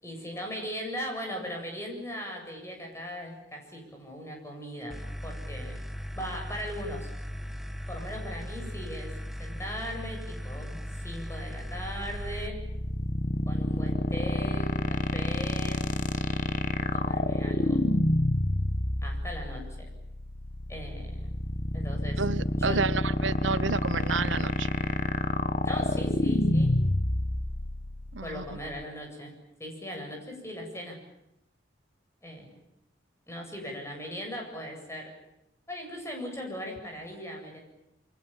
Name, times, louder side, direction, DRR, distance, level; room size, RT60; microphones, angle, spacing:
voice 1, 0.0-5.0 5.2-5.8 6.2-7.1 7.9-9.1 9.4-12.6 13.5-15.8 16.8-17.8 19.0-19.6 20.7-21.2 21.7-22.2 22.6-22.8 25.6-26.7 28.2-29.3 29.6-31.0 32.2-32.6 33.3-35.1 35.7-37.6, equal, 15° left, 2 dB, 7.8 m, -39 dB
sound 1, 4.9-12.5, equal, ahead, 1.1 m, -38 dB
sound 2, 11.7-28.8, left 1 dB, 40° left, 1.1 m, -28 dB
voice 2, 22.2-24.7 28.1-28.6, right 4 dB, 80° right, 15 dB, 1.0 m, -30 dB
29.0 x 24.5 x 7.4 m, 0.83 s
head